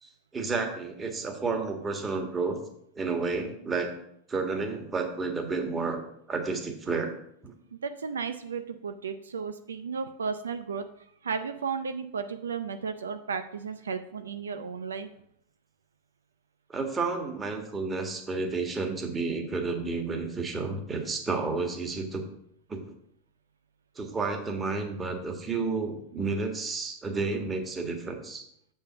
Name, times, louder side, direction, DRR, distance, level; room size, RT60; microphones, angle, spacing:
voice 1, 0.0-2.6 2.9-3.9 4.3-6.0 6.3-7.1 7.4-7.5 16.7-22.3 22.7-22.8 23.9-28.4, right 4 dB, 20° right, 4 dB, 1.7 m, -31 dB
voice 2, 7.7-10.9 11.2-15.1, right 5 dB, 80° right, 9 dB, 0.5 m, -34 dB
7.0 x 5.5 x 5.8 m, 0.72 s
hypercardioid pair, 90°, 0 cm